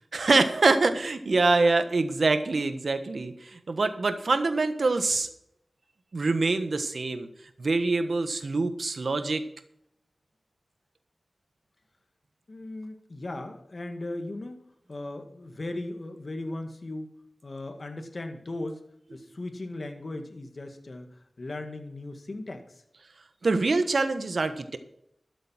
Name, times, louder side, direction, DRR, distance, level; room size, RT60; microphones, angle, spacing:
voice 1, 0.1-5.3 6.1-7.3 7.6-9.4 23.4-24.8, right 3 dB, 75° right, 9 dB, 1.3 m, -25 dB
voice 2, 12.5-17.1 17.4-18.8 19.1-22.8, left 2 dB, 60° left, 5 dB, 1.9 m, -37 dB
12.5 x 7.9 x 5.9 m, 0.73 s
cardioid pair, 45°, 0 cm